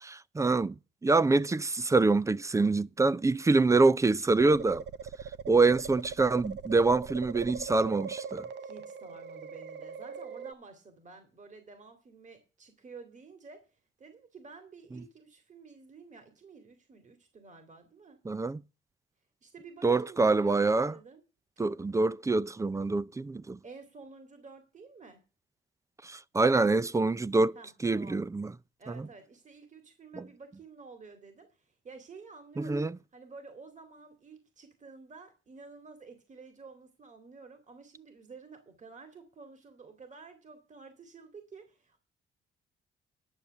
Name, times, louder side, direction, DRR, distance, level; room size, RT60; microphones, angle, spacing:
voice 1, 0.0-0.7 1.0-4.8 5.5-8.4 18.3-18.6 19.8-20.9 21.6-23.6 26.0-27.6 27.8-28.5 32.6-32.9, right 3 dB, 15° right, 0.4 m, -25 dB
sound 1, 4.4-10.5, right 6 dB, 60° right, 0.7 m, -40 dB
voice 2, 8.6-18.2 19.4-21.2 23.6-25.2 27.5-28.2 28.8-32.9 33.1-42.0, right 4 dB, 40° right, 2.5 m, -51 dB
10.5 x 7.0 x 6.6 m
cardioid pair, 90°, 20 cm